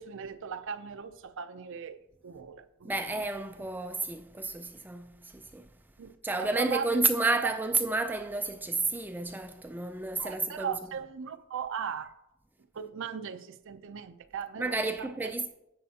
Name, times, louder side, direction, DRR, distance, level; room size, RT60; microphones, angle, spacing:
voice 1, 0.0-2.0 2.2-2.9 6.0-7.0 10.2-12.1 12.7-15.3, right 7 dB, 60° right, 0.5 m, -38 dB
voice 2, 2.8-5.7 6.2-10.8 14.6-15.5, right 3 dB, 10° right, 0.3 m, -31 dB
10.5 x 7.5 x 2.8 m
head